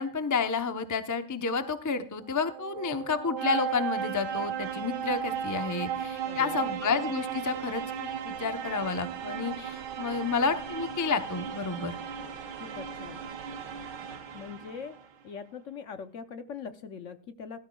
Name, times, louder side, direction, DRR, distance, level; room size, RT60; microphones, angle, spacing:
voice 1, 0.0-12.0, left 4 dB, 25° left, 8 dB, 0.4 m, -30 dB
sound 1, 2.2-15.0, right 8 dB, 80° right, 1.6 m, -36 dB
voice 2, 6.2-6.7 12.6-13.2 14.3-15.0 15.2-17.7, left 6 dB, 55° left, 9 dB, 1.0 m, -42 dB
17.5 x 12.5 x 2.3 m, 0.43 s
omnidirectional pair, 1.8 m